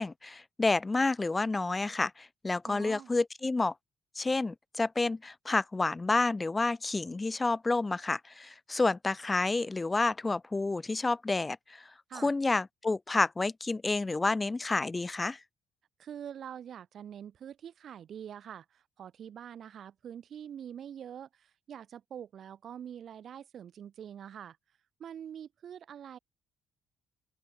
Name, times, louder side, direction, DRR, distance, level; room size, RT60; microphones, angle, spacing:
voice 1, 0.0-3.7 4.2-15.4, left 3 dB, 20° left, 0.4 m, -29 dB
voice 2, 2.7-3.1 12.1-12.3 16.0-24.6 25.0-26.2, right 9 dB, 60° right, 2.1 m, -45 dB
open air
cardioid pair, 95°, 0 cm